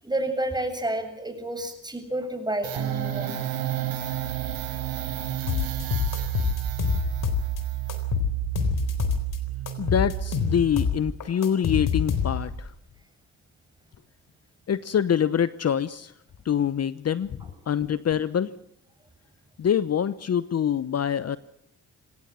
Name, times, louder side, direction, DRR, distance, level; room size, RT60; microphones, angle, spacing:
voice 1, 0.0-3.4 17.4-17.5, right 1 dB, 10° right, 6 dB, 7.8 m, -30 dB
sound 1, 2.6-11.1, right 14 dB, 90° right, 3.9 m, -31 dB
sound 2, 5.5-7.6 7.9-9.4 9.7-12.6, left 7 dB, 65° left, 3.9 m, -26 dB
voice 2, 9.8-12.7 14.7-16.1 16.4-17.3 17.7-18.5 19.6-21.4, left 8 dB, 45° left, 16 dB, 0.9 m, -25 dB
25.5 x 17.5 x 7.5 m, 0.70 s
supercardioid pair, 60°, 34 cm